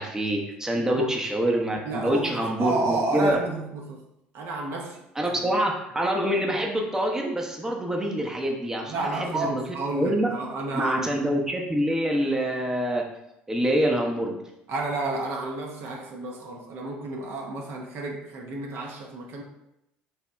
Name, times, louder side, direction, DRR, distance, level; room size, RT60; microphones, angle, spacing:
voice 1, 0.0-3.4 5.2-9.6 9.9-10.3 10.7-13.0 13.5-14.4, equal, 10° right, 0 dB, 0.6 m, -26 dB
voice 2, 0.8-1.1 1.8-4.0 4.3-5.0 8.8-11.2 14.7-19.4, right 2 dB, 60° right, 0 dB, 0.5 m, -31 dB
2.8 x 2.1 x 3.3 m, 0.84 s
hypercardioid pair, 65°, 5 cm